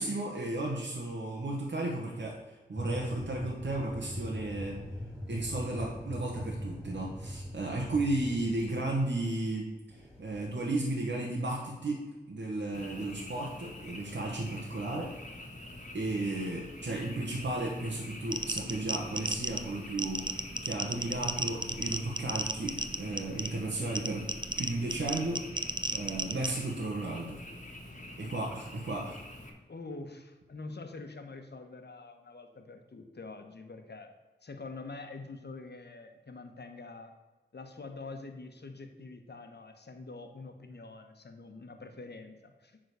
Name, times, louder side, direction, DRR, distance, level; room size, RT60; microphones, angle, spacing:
voice 1, 0.0-4.8 5.3-15.1 15.9-25.4 25.9-27.4 28.2-29.2, right 2 dB, 75° right, -2 dB, 1.3 m, -34 dB
sound 1, 2.7-9.2 9.9-10.6, equal, 5° left, 3.2 m, -42 dB
Frog, 12.7-29.5, left 1 dB, 40° left, 1.4 m, -46 dB
sound 2, 18.3-26.5, right 2 dB, 25° right, 0.6 m, -35 dB
voice 2, 29.7-34.1 34.4-37.1 37.5-42.8, left 3 dB, 65° left, 6 dB, 1.1 m, -45 dB
9.0 x 4.0 x 6.7 m, 1.2 s
wide cardioid pair, 60°, 19 cm